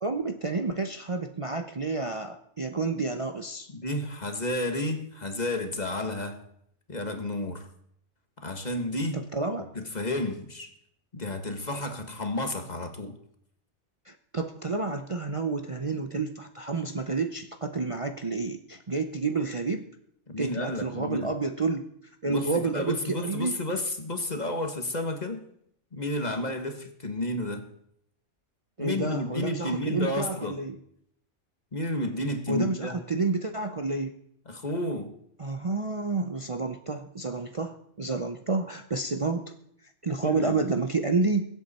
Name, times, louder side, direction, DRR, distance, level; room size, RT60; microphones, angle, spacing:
voice 1, 0.0-3.7 9.1-9.7 14.1-19.9 20.4-21.9 22.2-23.5 28.8-30.8 32.5-34.1 35.4-39.5 40.0-41.5, right 3 dB, 30° right, 6 dB, 0.7 m, -29 dB
voice 2, 3.7-6.4 6.9-7.7 8.4-9.2 9.7-10.7 11.1-13.2 20.3-21.3 22.2-25.4 25.9-27.7 28.8-30.6 31.7-33.0 34.5-35.1 40.2-40.6, left 1 dB, 35° left, 6 dB, 1.6 m, -31 dB
23.0 x 8.3 x 4.2 m, 0.69 s
omnidirectional pair, 1.2 m